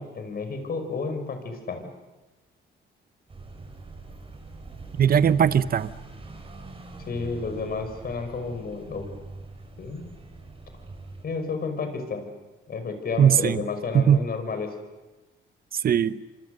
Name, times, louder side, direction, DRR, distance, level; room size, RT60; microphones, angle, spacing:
voice 1, 0.0-1.9 7.0-9.1 9.8-10.1 11.2-12.2 12.7-14.8, left 4 dB, 50° left, 7 dB, 5.6 m, -31 dB
sound 1, 3.3-11.2, right 3 dB, 30° right, 5.4 m, -43 dB
voice 2, 5.0-5.9 13.2-13.6 13.9-14.2 15.7-16.2, right 8 dB, 50° right, 14 dB, 0.9 m, -19 dB
26.5 x 25.5 x 6.6 m, 1.1 s
cardioid pair, 90°, 20 cm